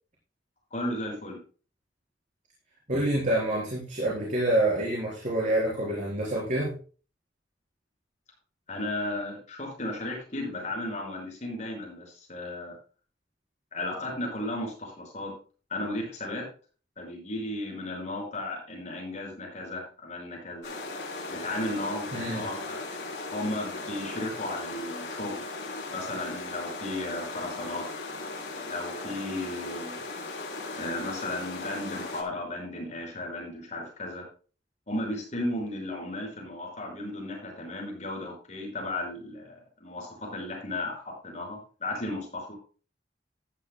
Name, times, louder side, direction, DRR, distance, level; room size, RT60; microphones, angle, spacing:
voice 1, 0.7-1.4 8.7-12.7 13.7-15.3 15.7-16.5 17.0-20.7 21.3-22.8 23.3-25.4 25.9-27.9 28.6-30.0 30.7-34.3 34.9-39.5 39.8-42.5, left 1 dB, 40° left, -1 dB, 5.6 m, -35 dB
voice 2, 2.9-6.7 22.1-22.4, right 1 dB, 45° right, -5 dB, 4.0 m, -27 dB
sound 1, 20.6-32.2, left 3 dB, 70° left, 3.7 m, -37 dB
14.5 x 11.5 x 2.2 m, 0.38 s
head